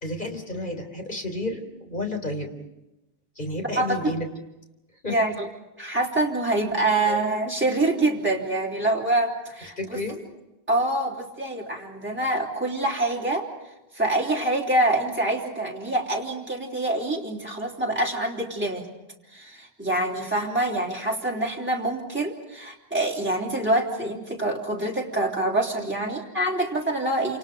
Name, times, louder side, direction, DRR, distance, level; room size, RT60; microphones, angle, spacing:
voice 1, 0.0-2.5 3.4-4.3 5.0-5.2 7.1-7.2 9.8-10.2, left 2 dB, 50° left, 4 dB, 4.0 m, -31 dB
voice 2, 3.8-4.1 5.1-5.5 5.8-10.0 10.7-13.5 13.9-18.9 19.3-27.4, right 2 dB, 10° right, -2 dB, 3.5 m, -25 dB
29.0 x 27.5 x 5.1 m, 0.96 s
omnidirectional pair, 1.0 m